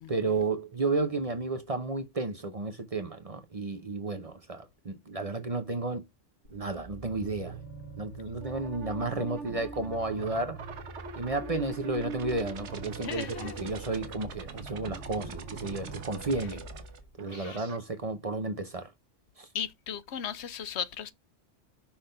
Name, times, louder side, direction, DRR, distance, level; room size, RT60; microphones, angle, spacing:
voice 1, 0.1-6.0 6.5-7.6 8.0-10.6 11.2-16.6 17.2-18.9 19.4-19.5, right 3 dB, 35° right, 0.8 m, -32 dB
sound 1, 6.4-17.1, right 2 dB, 55° left, 2.8 m, -46 dB
sound 2, 8.4-17.8, right 4 dB, 90° right, 1.3 m, -42 dB
voice 2, 13.0-13.5 17.3-17.6 19.5-21.1, left 8 dB, 75° left, 0.9 m, -36 dB
5.8 x 3.5 x 5.6 m
omnidirectional pair, 1.2 m